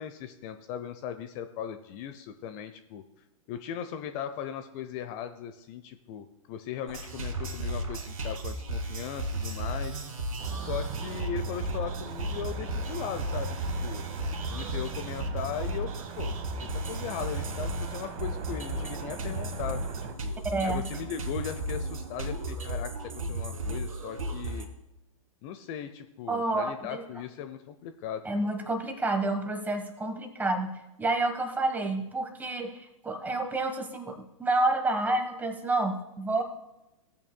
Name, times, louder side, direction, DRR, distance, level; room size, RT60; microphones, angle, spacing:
voice 1, 0.0-3.0 3.5-10.0 10.5-14.0 14.5-16.3 16.6-20.3 20.6-22.9 23.2-24.7 25.4-28.3, left 9 dB, 40° left, 9 dB, 0.6 m, -38 dB
sound 1, 6.9-24.6, right 1 dB, 80° right, 2.2 m, -34 dB
sound 2, 10.4-20.1, right 6 dB, 40° right, 1.2 m, -40 dB
voice 2, 20.5-20.9 26.3-27.0 28.2-36.4, right 2 dB, 10° right, 5 dB, 1.3 m, -29 dB
16.5 x 8.4 x 2.2 m, 0.93 s
hypercardioid pair, 115°, 18 cm